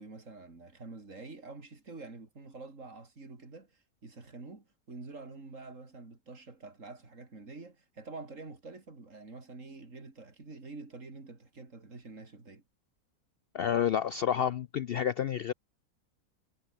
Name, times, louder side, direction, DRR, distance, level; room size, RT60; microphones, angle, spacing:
voice 1, 0.0-12.6, right 3 dB, 55° right, 4.0 m, -47 dB
voice 2, 13.5-15.5, left 9 dB, 85° left, 0.5 m, -29 dB
omnidirectional pair, 1.6 m